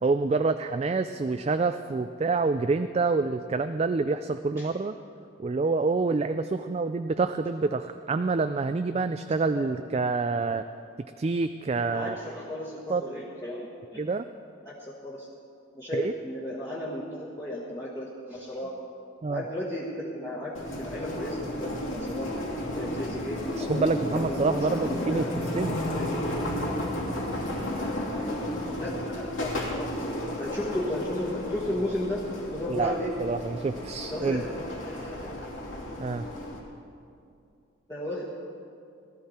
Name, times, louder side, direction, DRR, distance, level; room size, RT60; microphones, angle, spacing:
voice 1, 0.0-4.9 5.4-10.6 11.2-12.2 12.9-13.0 14.0-14.2 15.9-16.1 19.2-19.4 23.6-25.3 25.5-25.8 32.8-32.9 33.2-34.4 36.0-36.3, right 3 dB, 30° right, 9 dB, 0.3 m, -27 dB
voice 2, 11.8-14.0 14.6-15.3 15.7-18.7 19.3-22.3 22.7-25.3 25.8-26.2 28.8-29.9 30.4-32.2 32.5-33.1 34.1-34.5 34.9-35.4 37.9-38.3, left 1 dB, 15° left, -7 dB, 1.5 m, -34 dB
sound 1, 20.5-36.6, left 1 dB, 75° left, 2.9 m, -33 dB
18.5 x 13.5 x 4.3 m, 2.5 s
head